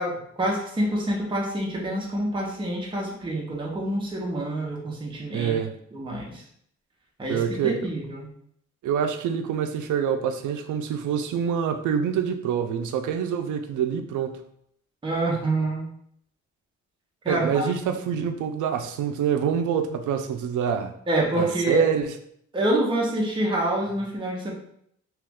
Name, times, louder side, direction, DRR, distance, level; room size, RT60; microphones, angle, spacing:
voice 1, 0.0-5.6 5.9-6.4 7.2-8.3 15.0-15.9 17.2-17.6 21.1-21.8 22.5-24.5, right 1 dB, 15° right, -3 dB, 0.7 m, -27 dB
voice 2, 5.3-5.7 7.3-7.9 8.8-14.4 17.3-20.9 21.3-22.1, right 8 dB, 80° right, 7 dB, 0.5 m, -26 dB
3.0 x 2.3 x 3.4 m, 0.69 s
cardioid pair, 120°, 30 cm